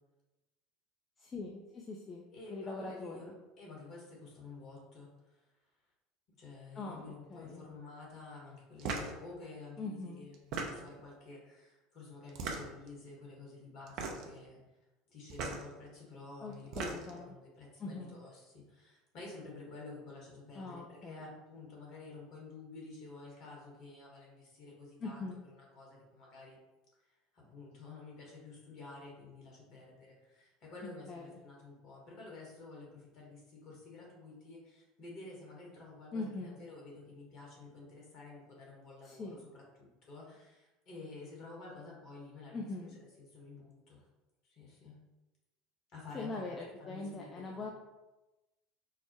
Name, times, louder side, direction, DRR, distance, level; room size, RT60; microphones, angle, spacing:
voice 1, 1.2-2.2 2.5-3.3 6.8-7.7 9.8-10.2 16.4-17.3 17.8-18.2 20.6-21.3 25.0-25.4 31.1-31.4 36.1-36.6 39.0-39.4 42.5-43.0 46.1-47.7, left 3 dB, 30° left, -1 dB, 0.5 m, -42 dB
voice 2, 2.3-3.3 3.6-5.5 6.4-14.8 15.1-26.6 27.0-44.0 44.4-45.0 45.9-47.7, left 3 dB, 50° left, -3 dB, 1.4 m, -51 dB
sound 1, 8.8-9.2 10.3-11.0 12.3-12.9 13.9-14.4 15.3-15.6 16.5-17.2, right 4 dB, 55° right, 0.5 m, -38 dB
4.7 x 2.1 x 2.9 m, 1.0 s
hypercardioid pair, 75°, 0 cm